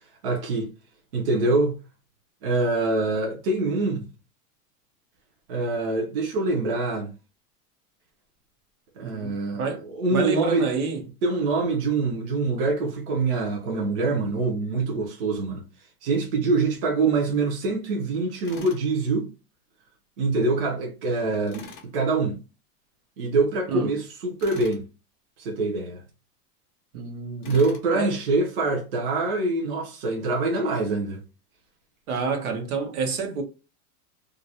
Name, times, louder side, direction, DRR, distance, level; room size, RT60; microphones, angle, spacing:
voice 1, 0.2-0.7 1.1-1.8 2.4-4.0 5.5-7.1 9.0-10.7 11.2-15.6 16.0-19.3 20.2-21.7 21.9-22.4 23.2-24.8 25.4-26.0 27.4-31.2, right 3 dB, 40° right, 0.5 m, -25 dB
voice 2, 9.0-9.3 9.6-9.8 10.1-11.0 23.7-23.9 26.9-27.5 27.9-28.1 32.1-33.4, right 5 dB, 70° right, 0.9 m, -28 dB
Tools, 18.4-18.9 21.5-21.9 24.4-24.8 27.4-27.9, left 5 dB, 35° left, 0.4 m, -44 dB
2.4 x 2.0 x 2.7 m
supercardioid pair, 180°, 46 cm